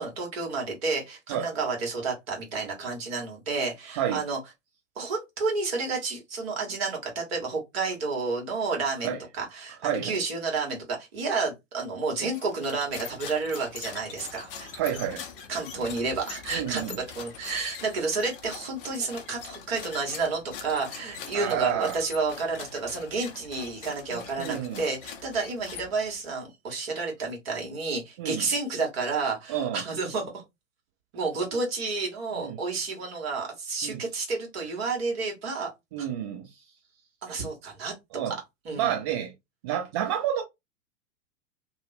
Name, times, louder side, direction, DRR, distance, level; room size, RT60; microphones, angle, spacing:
voice 1, 0.0-4.4 4.9-14.7 15.5-30.4 31.1-35.7 36.0-36.1 37.2-37.9 38.6-38.9, right 4 dB, 50° right, 1.3 m, -30 dB
sound 1, 12.3-26.2, left 7 dB, 45° left, 0.6 m, -43 dB
voice 2, 14.7-15.2 16.5-17.0 21.3-22.0 24.1-24.8 28.2-28.4 29.5-29.8 32.4-32.6 33.8-34.0 35.9-36.5 38.1-38.4 38.7-39.3 39.6-40.4, right 10 dB, 20° right, 0.3 m, -29 dB
2.7 x 2.1 x 2.6 m
figure-of-eight pair, 100°, 39 cm